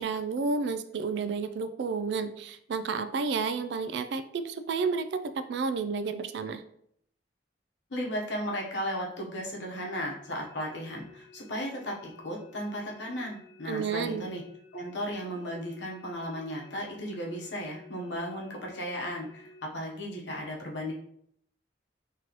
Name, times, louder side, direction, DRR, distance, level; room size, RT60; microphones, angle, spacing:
voice 1, 0.0-6.6 13.7-14.2, right 4 dB, 65° right, 10 dB, 0.3 m, -31 dB
voice 2, 7.9-14.4 14.7-20.9, equal, 70° left, -1 dB, 0.9 m, -35 dB
sound 1, 10.2-19.7, left 4 dB, 15° left, 1.2 m, -54 dB
3.0 x 3.0 x 3.8 m, 0.68 s
head